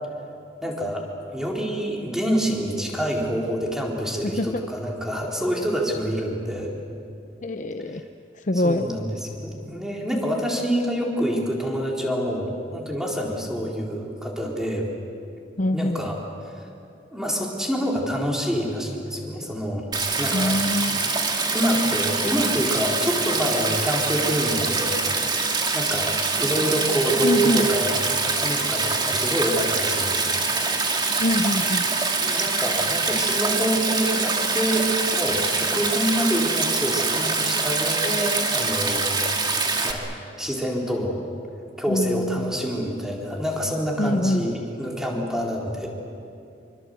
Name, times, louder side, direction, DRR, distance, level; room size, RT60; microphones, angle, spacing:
voice 1, 0.6-1.1 1.3-6.8 8.5-14.9 15.7-16.2 16.6-16.7 17.1-19.9 20.2-20.6 21.5-25.0 25.7-30.4 32.2-39.2 39.8-40.0 40.4-41.2 41.8-45.9, equal, 5° right, -2 dB, 4.1 m, -26 dB
voice 2, 4.2-4.6 7.4-8.0 8.5-8.9 15.6-16.0 20.3-21.0 27.2-27.7 31.2-31.9 41.9-42.5 44.0-44.5, left 1 dB, 45° left, 8 dB, 0.8 m, -24 dB
Stream, 19.9-39.9, right 4 dB, 25° right, 2.3 m, -24 dB
27.0 x 24.5 x 8.0 m, 2.6 s
head